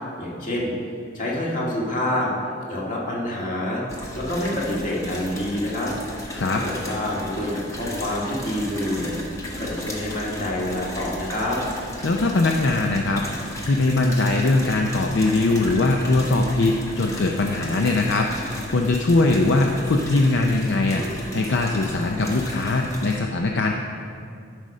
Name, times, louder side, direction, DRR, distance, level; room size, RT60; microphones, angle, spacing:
voice 1, 0.2-0.7 1.1-2.3 2.7-3.8 4.1-5.9 6.5-9.1 9.6-11.6, left 1 dB, 40° left, -4 dB, 1.8 m, -27 dB
sound 1, 3.9-23.2, equal, 15° left, 1.0 m, -35 dB
voice 2, 12.0-21.1 21.3-23.7, left 2 dB, 60° left, 2 dB, 0.5 m, -21 dB
11.5 x 4.9 x 5.4 m, 2.4 s
head